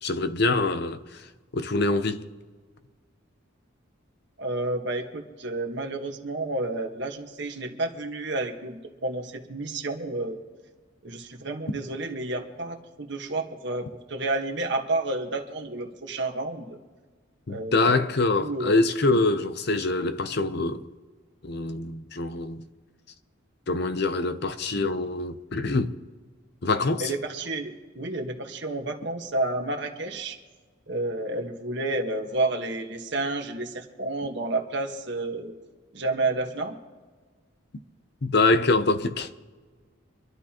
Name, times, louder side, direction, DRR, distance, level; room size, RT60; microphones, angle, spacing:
voice 1, 0.0-1.2 1.5-2.2 17.5-20.8 21.4-22.6 23.7-26.0 26.6-27.1 38.2-39.3, left 3 dB, 55° left, 0.7 m, -24 dB
voice 2, 4.4-10.4 11.0-16.8 17.5-18.1 18.4-18.8 27.0-30.4 30.9-35.5 35.9-36.8, right 2 dB, 55° right, 1.4 m, -30 dB
26.0 x 12.0 x 3.0 m
head